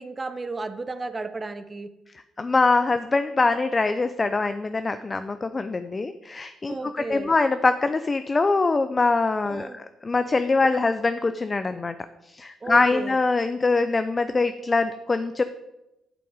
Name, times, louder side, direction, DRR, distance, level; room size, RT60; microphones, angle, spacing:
voice 1, 0.0-1.9 6.7-7.3 9.5-9.8 12.6-13.2, right 3 dB, 25° right, 10 dB, 0.7 m, -33 dB
voice 2, 2.4-11.9 12.2-15.4, left 3 dB, 30° left, 10 dB, 0.5 m, -23 dB
11.0 x 5.9 x 4.8 m, 0.94 s
cardioid pair, 90°, 0 cm